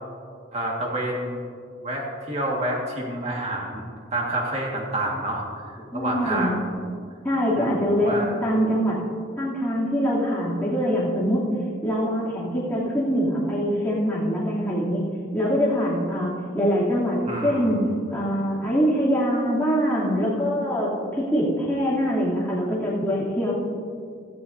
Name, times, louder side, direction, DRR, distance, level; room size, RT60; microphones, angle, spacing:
voice 1, 0.5-1.5 1.8-5.4 5.9-6.7 7.5-8.3 17.2-17.8, right 1 dB, 35° right, -2 dB, 1.9 m, -28 dB
voice 2, 5.9-6.6 7.2-9.0 9.4-11.4 11.8-15.0 15.3-17.8 18.1-23.5, equal, 10° left, -9 dB, 3.0 m, -23 dB
17.0 x 13.0 x 2.8 m, 2.3 s
head